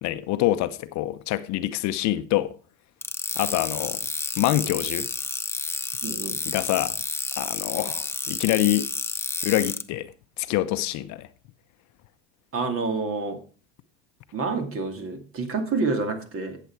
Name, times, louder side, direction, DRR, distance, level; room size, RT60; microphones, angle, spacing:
voice 1, 0.0-2.5 3.3-4.0 4.4-5.1 6.5-7.0 7.4-8.9 9.4-10.1 10.4-11.3, left 15 dB, 55° left, 0.8 m, -25 dB
sound 1, 3.0-9.8, left 3 dB, 5° left, 0.6 m, -30 dB
voice 2, 6.0-6.4 12.5-13.4 14.3-16.6, right 4 dB, 40° right, 2.4 m, -28 dB
11.5 x 7.7 x 4.6 m
supercardioid pair, 95°, 35 cm